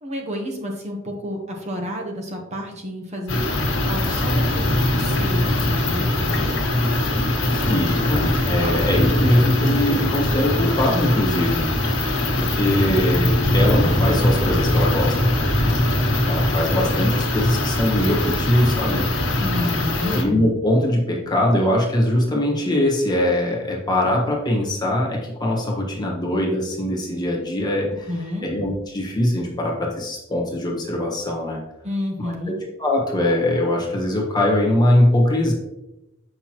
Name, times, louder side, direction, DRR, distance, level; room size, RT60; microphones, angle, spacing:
voice 1, 0.0-6.5 8.6-8.8 19.4-20.2 28.1-28.5 31.8-32.6, left 1 dB, 35° right, 1 dB, 1.0 m, -30 dB
sound 1, 3.3-20.2, left 1 dB, 70° left, 1.5 m, -21 dB
voice 2, 7.5-11.7 12.3-15.3 16.3-19.1 20.0-28.1 28.4-31.6 32.2-32.5 32.8-35.5, left 1 dB, 20° left, -2 dB, 1.4 m, -21 dB
7.8 x 5.5 x 3.0 m, 0.93 s
head